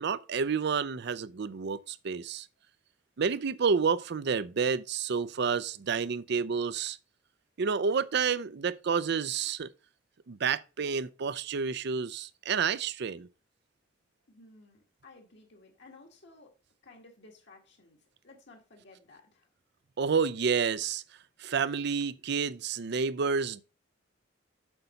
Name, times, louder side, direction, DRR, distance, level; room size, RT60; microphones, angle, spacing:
voice 1, 0.0-2.5 3.2-7.0 7.6-9.7 10.3-13.3 20.0-21.0 21.4-23.6, right 5 dB, 60° right, 0.5 m, -29 dB
voice 2, 14.3-16.5 16.8-19.5, left 3 dB, 65° left, 1.9 m, -56 dB
8.0 x 4.1 x 5.7 m
head